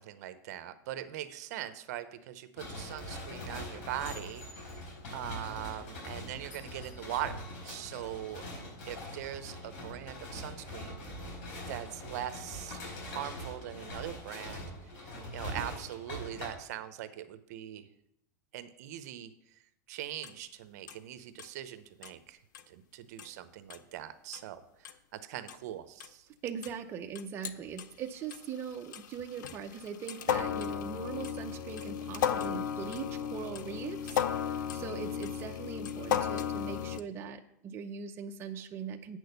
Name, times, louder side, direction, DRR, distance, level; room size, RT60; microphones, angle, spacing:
voice 1, 0.0-4.8 5.1-8.4 8.9-11.0 11.7-14.7 15.3-17.9 18.5-19.3 19.9-22.4 22.7-26.3, right 12 dB, 60° right, 12 dB, 0.8 m, -41 dB
sound 1, 2.6-16.5, left 1 dB, 50° left, 4.7 m, -43 dB
sound 2, 20.2-20.3 20.9-21.0 21.4-21.5 22.0-22.1 22.5-22.6 23.2-23.3 23.7-23.8 24.3-24.4 24.8-24.9 25.5-25.6 26.0-26.1 26.6-26.7 27.1-27.8 28.3-37.0, left 8 dB, 90° left, 0.7 m, -34 dB
voice 2, 26.4-39.2, right 7 dB, 25° right, 4 dB, 0.6 m, -41 dB
8.6 x 6.3 x 6.7 m, 0.77 s
supercardioid pair, 155°, 10 cm